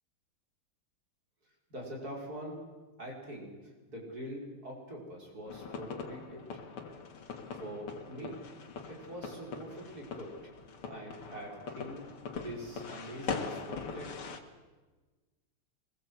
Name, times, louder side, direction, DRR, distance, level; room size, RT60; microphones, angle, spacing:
voice 1, 1.7-2.6 3.0-3.5 3.9-6.5 7.5-8.4 8.9-10.3 10.8-12.0 12.3-14.2, equal, 45° right, -2 dB, 6.0 m, -44 dB
sound 1, 5.5-14.4, left 5 dB, 85° left, 2.8 m, -42 dB
24.5 x 22.0 x 8.1 m, 1.3 s
omnidirectional pair, 2.4 m